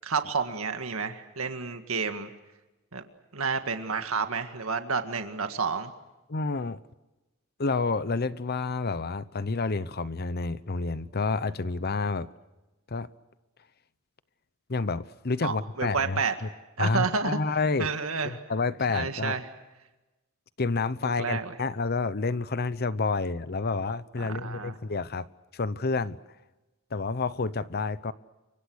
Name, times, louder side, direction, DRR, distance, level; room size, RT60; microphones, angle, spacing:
voice 1, 0.0-2.3 2.9-3.0 3.3-5.9 15.4-16.4 16.8-17.4 17.8-18.4 18.9-19.4 21.0-21.5 24.2-24.7, right 5 dB, 85° right, 1.9 m, -30 dB
voice 2, 6.3-6.8 7.6-12.3 12.9-13.1 14.7-16.2 16.8-17.9 18.2-19.4 20.6-25.3 25.5-26.2 26.9-28.1, left 3 dB, 50° left, 0.8 m, -29 dB
29.0 x 24.5 x 6.3 m
head